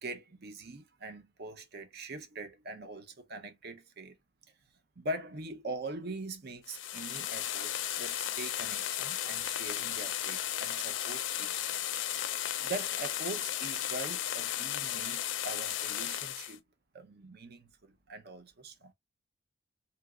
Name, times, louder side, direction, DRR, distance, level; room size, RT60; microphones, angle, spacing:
voice 1, 0.0-4.2 5.0-11.6 12.6-16.6 16.9-18.9, right 2 dB, 60° right, 0.7 m, -42 dB
sound 1, 6.6-16.6, left 12 dB, 75° left, 0.4 m, -35 dB
3.4 x 2.9 x 2.3 m
head